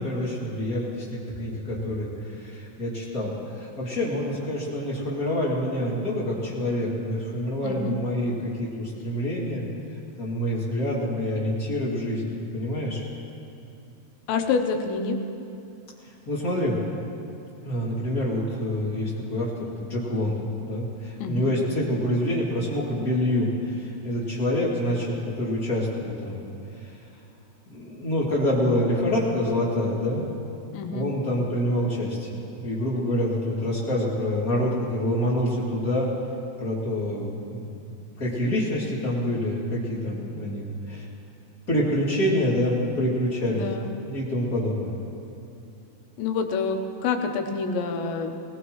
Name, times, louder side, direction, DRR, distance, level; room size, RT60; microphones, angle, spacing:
voice 1, 0.0-9.7 10.2-13.0 16.0-16.8 17.6-19.5 19.8-26.4 26.8-26.9 27.7-30.2 30.9-36.1 36.6-37.7 38.2-41.1 41.7-43.7 44.0-44.9, left 1 dB, 25° left, -6 dB, 2.3 m, -27 dB
voice 2, 7.6-8.0 14.3-15.2 21.2-21.5 30.7-31.1 43.4-43.9 46.2-48.3, left 5 dB, 85° left, 4 dB, 3.3 m, -27 dB
20.5 x 20.0 x 3.2 m, 2.7 s
omnidirectional pair, 5.0 m